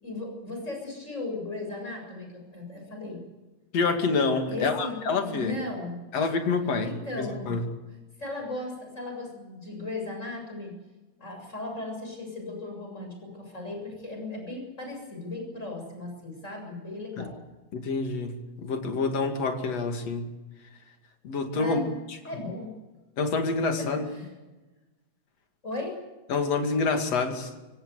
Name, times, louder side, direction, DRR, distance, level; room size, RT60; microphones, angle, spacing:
voice 1, 0.0-3.2 4.5-5.0 5.3-6.0 6.8-7.6 8.2-10.8 11.2-17.4 21.6-21.9 22.2-22.7 23.8-24.3 25.6-26.0, left 2 dB, 25° left, 1 dB, 7.6 m, -36 dB
voice 2, 3.7-5.6 6.1-7.6 17.2-17.3 17.7-20.3 21.2-21.8 23.2-24.0 26.3-27.5, left 4 dB, 60° left, 5 dB, 3.5 m, -27 dB
26.0 x 17.0 x 8.2 m, 1.2 s
omnidirectional pair, 3.3 m